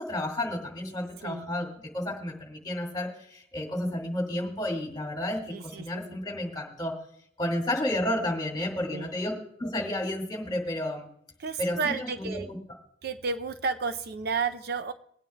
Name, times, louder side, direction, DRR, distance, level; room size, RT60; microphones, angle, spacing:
voice 1, 0.0-7.0 7.4-11.1 11.6-12.6, left 1 dB, 25° left, 1 dB, 2.1 m, -31 dB
voice 2, 5.5-6.2 8.9-9.1 11.4-12.5 13.0-14.9, right 5 dB, 60° right, 10 dB, 0.5 m, -32 dB
22.5 x 9.2 x 2.2 m, 0.68 s
head